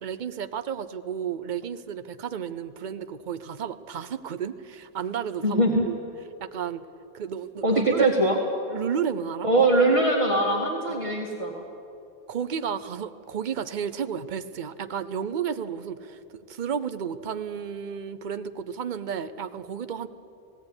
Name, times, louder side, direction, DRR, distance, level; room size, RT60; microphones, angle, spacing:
voice 1, 0.0-6.0 6.4-6.9 7.1-8.1 8.7-9.5 12.3-20.1, right 7 dB, 50° right, 11 dB, 0.8 m, -32 dB
voice 2, 5.4-5.9 7.6-8.4 9.4-11.6, right 2 dB, 30° right, -1 dB, 1.9 m, -22 dB
17.5 x 16.0 x 9.7 m, 2.6 s
omnidirectional pair, 1.0 m